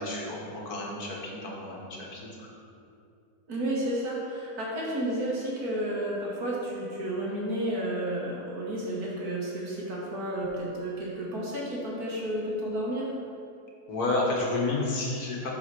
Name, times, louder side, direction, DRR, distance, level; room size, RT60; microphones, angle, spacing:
voice 1, 0.0-2.5 13.9-15.5, left 2 dB, 65° left, -2 dB, 1.8 m, -31 dB
voice 2, 3.5-13.1, right 1 dB, 65° right, -5 dB, 2.1 m, -31 dB
7.9 x 4.8 x 6.0 m, 2.6 s
omnidirectional pair, 1.7 m